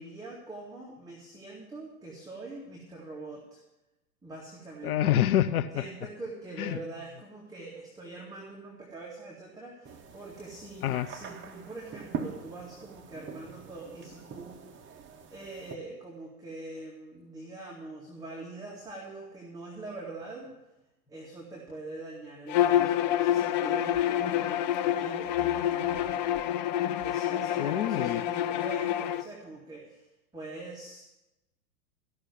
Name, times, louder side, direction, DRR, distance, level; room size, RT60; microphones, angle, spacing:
voice 1, 0.0-3.6 4.2-4.9 5.7-14.7 15.3-20.5 21.1-26.3 27.0-30.0 30.3-31.0, right 2 dB, 5° right, -3 dB, 2.1 m, -43 dB
voice 2, 4.8-5.8 6.6-6.8 10.8-11.1 27.6-28.2, left 11 dB, 65° left, 12 dB, 0.8 m, -26 dB
sound 1, 9.8-15.8, right 6 dB, 25° right, 1.0 m, -43 dB
Bowed string instrument, 22.5-29.2, left 11 dB, 30° left, 0.4 m, -27 dB
14.5 x 6.3 x 8.2 m, 0.98 s
hypercardioid pair, 110°, 47 cm